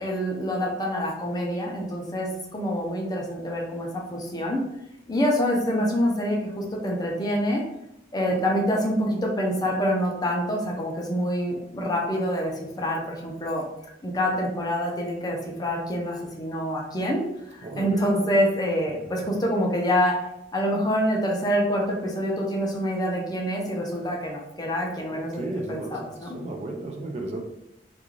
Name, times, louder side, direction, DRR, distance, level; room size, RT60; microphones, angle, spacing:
voice 1, 0.0-4.6 5.1-7.6 8.1-13.6 14.0-17.2 17.5-20.2 20.5-26.4, equal, 20° left, -1 dB, 0.5 m, -26 dB
voice 2, 17.6-18.0 25.1-27.4, right 2 dB, 35° right, 2 dB, 0.4 m, -34 dB
2.4 x 2.4 x 3.0 m, 0.83 s
head